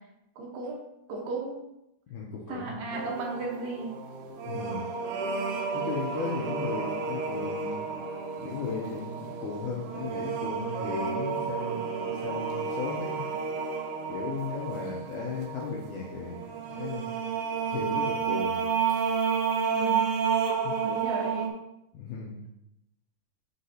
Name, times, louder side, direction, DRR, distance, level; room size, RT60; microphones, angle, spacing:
voice 1, 0.4-0.8 1.1-1.6 2.5-4.0 19.6-20.0 20.8-21.5, right 3 dB, 70° right, -1 dB, 2.4 m, -35 dB
voice 2, 2.1-2.8 4.4-4.9 5.7-7.9 8.4-13.2 14.1-16.4 16.7-17.1 17.7-18.7 20.6-20.8 21.9-22.4, left 5 dB, 85° left, -3 dB, 1.8 m, -36 dB
sound 1, 2.9-21.5, right 6 dB, 90° right, 1.7 m, -31 dB
9.4 x 3.8 x 2.7 m, 0.86 s
omnidirectional pair, 4.4 m